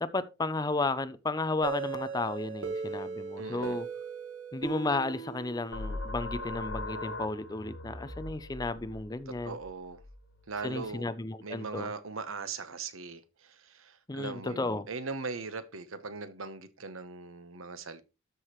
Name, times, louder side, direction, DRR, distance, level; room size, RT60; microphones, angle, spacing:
voice 1, 0.0-3.9 4.5-9.6 10.6-11.9 14.1-14.9, left 3 dB, 20° left, 0.5 m, -33 dB
sound 1, 1.6-6.3, right 5 dB, 65° right, 1.6 m, -38 dB
voice 2, 3.4-3.8 9.3-10.0 10.5-11.1 11.4-18.0, right 4 dB, 85° right, 1.0 m, -40 dB
sound 2, 5.7-11.0, left 2 dB, 70° left, 1.5 m, -40 dB
13.0 x 4.8 x 3.1 m
head